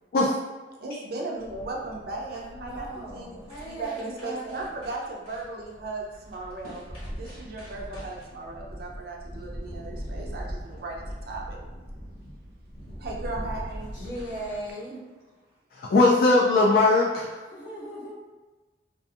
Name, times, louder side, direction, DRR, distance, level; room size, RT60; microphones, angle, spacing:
voice 1, 0.8-11.6 13.0-13.9 14.3-14.4, right 3 dB, 60° right, -1 dB, 0.5 m, -37 dB
sound 1, 1.4-14.7, equal, 30° left, 1.2 m, -41 dB
voice 2, 2.3-4.7 13.9-14.9 17.5-18.1, equal, 80° left, -9 dB, 1.3 m, -38 dB
voice 3, 15.7-17.4, left 2 dB, 55° left, -2 dB, 0.3 m, -20 dB
2.6 x 2.5 x 2.4 m, 1.3 s
head